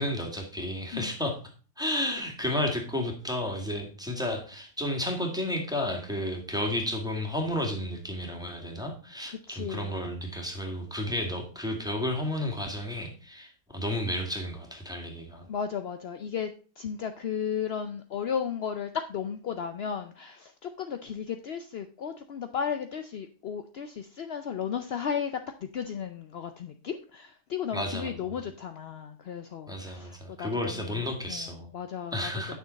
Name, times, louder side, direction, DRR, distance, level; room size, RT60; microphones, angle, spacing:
voice 1, 0.0-1.4 1.8-15.5 27.7-28.2 29.7-31.7 32.1-32.5, left 1 dB, ahead, 0 dB, 2.0 m, -32 dB
voice 2, 9.3-10.1 15.5-16.5 16.8-31.0 31.3-32.5, left 7 dB, 65° left, 8 dB, 0.6 m, -35 dB
9.5 x 6.4 x 4.0 m, 0.38 s
omnidirectional pair, 1.8 m